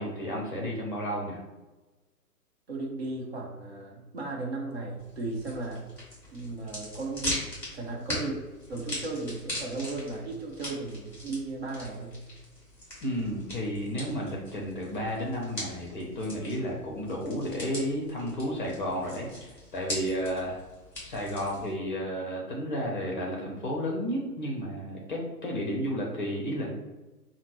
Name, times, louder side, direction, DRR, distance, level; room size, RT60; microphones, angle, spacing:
voice 1, 0.0-1.4 13.0-20.6 21.0-26.7, equal, 30° left, -2 dB, 0.7 m, -32 dB
voice 2, 2.7-5.9 6.3-7.4 7.7-8.4 8.7-12.2, right 3 dB, 40° right, -1 dB, 0.8 m, -35 dB
sound 1, 5.0-21.7, left 1 dB, 5° left, 1.2 m, -41 dB
5.5 x 2.1 x 3.1 m, 1.2 s
figure-of-eight pair, 125°, 48 cm